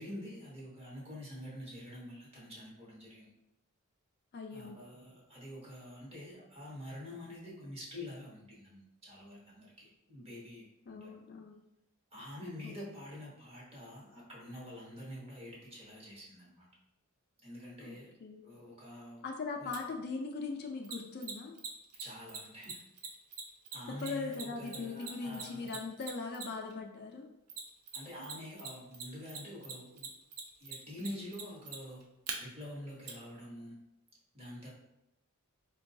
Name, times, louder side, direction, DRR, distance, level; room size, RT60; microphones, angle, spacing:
voice 1, 0.0-3.3 4.5-11.1 12.1-16.7 17.4-18.1 18.4-19.3 19.6-19.8 22.0-22.8 23.7-25.8 27.9-30.1 30.6-32.0 32.4-33.8 34.3-34.7, left 1 dB, 30° right, -5 dB, 1.0 m, -47 dB
voice 2, 4.3-4.8 10.9-11.6 12.6-12.7 17.8-18.5 19.2-21.5 24.0-27.3, left 4 dB, 50° left, 2 dB, 0.4 m, -40 dB
Mechanisms, 19.7-19.8 20.8-26.7 27.5-28.3 28.6-32.3 33.1-33.2, right 6 dB, 80° right, 0.5 m, -42 dB
4.4 x 2.2 x 2.6 m, 0.89 s
head